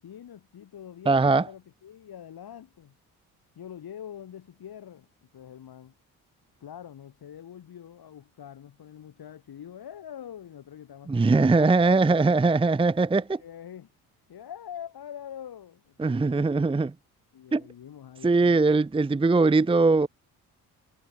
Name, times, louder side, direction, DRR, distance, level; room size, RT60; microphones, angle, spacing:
voice 1, 0.0-3.0 3.6-5.9 6.6-12.3 13.1-13.9 14.3-16.8 17.3-18.7, left 9 dB, 55° left, 5.4 m, -44 dB
voice 2, 1.1-1.4 11.1-13.4 16.0-16.9 17.5-17.6 18.2-20.1, right 3 dB, 10° right, 0.7 m, -21 dB
hypercardioid pair, 50°, 44 cm